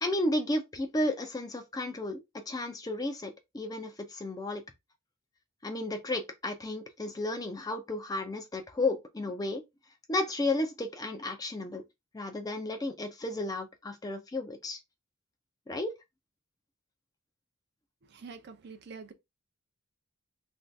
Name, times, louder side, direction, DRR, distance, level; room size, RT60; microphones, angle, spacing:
voice 1, 0.0-4.6 5.6-9.6 10.1-11.8 12.1-14.8 15.7-15.9, left 2 dB, 15° left, 0.4 m, -33 dB
voice 2, 18.0-19.1, right 5 dB, 50° right, 0.5 m, -46 dB
2.6 x 2.3 x 3.2 m
head